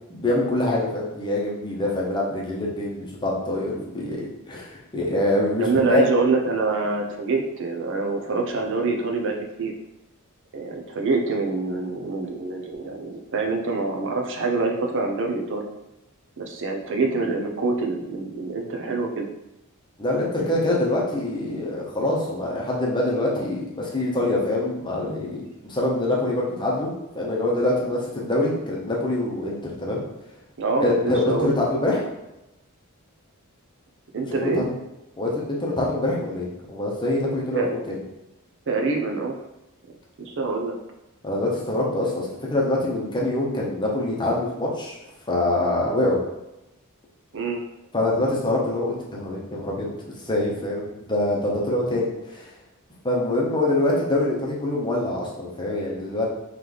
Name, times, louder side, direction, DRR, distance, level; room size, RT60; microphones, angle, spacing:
voice 1, 0.1-6.0 20.0-30.0 30.8-32.0 34.4-34.7 35.2-38.0 41.2-44.9 45.3-46.2 47.9-52.5 53.0-56.2, left 1 dB, 20° left, -3 dB, 0.9 m, -25 dB
voice 2, 5.5-9.7 10.5-15.6 16.4-19.3 30.6-31.5 34.1-34.6 37.5-37.7 38.7-39.3 40.2-40.7 47.3-47.6, right 3 dB, 55° right, 2 dB, 0.6 m, -25 dB
3.2 x 3.2 x 3.9 m, 0.93 s
head